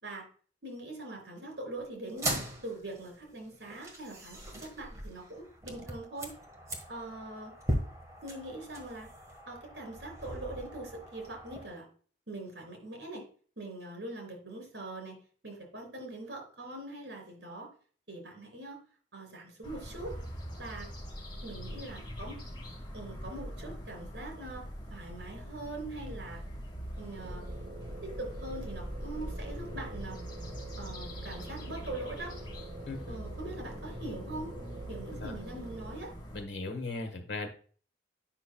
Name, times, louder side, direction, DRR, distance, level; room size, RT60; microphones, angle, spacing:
voice 1, 0.6-6.3 6.9-7.5 8.2-9.1 9.4-11.8 12.3-13.2 13.6-17.7 18.1-18.8 19.1-20.2 20.6-20.9 21.4-22.4 22.9-26.4 27.0-27.5 28.0-30.2 30.8-32.3 33.1-34.5 34.9-36.1, right 2 dB, 65° right, 1 dB, 3.4 m, -42 dB
sound 1, 2.1-11.7, right 1 dB, 20° right, 1.4 m, -39 dB
sound 2, 19.6-36.4, equal, 25° left, 1.7 m, -42 dB
sound 3, 27.1-36.0, right 2 dB, 50° right, 1.0 m, -48 dB
voice 2, 32.9-33.2 35.2-35.3 36.3-37.5, left 3 dB, 80° left, 5 dB, 1.3 m, -37 dB
9.4 x 5.9 x 2.2 m, 0.43 s
head